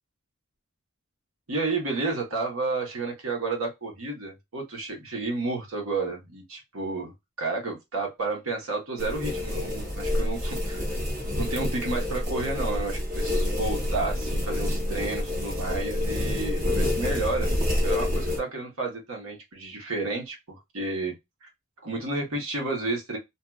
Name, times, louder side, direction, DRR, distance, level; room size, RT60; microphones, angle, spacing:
voice 1, 1.5-7.1 7.4-10.8 11.4-17.5 17.8-21.1 21.4-21.5 21.8-23.2, right 3 dB, 80° right, 1.3 m, -31 dB
sound 1, 9.0-18.4, left 1 dB, 40° right, 1.0 m, -28 dB
2.9 x 2.6 x 2.3 m
head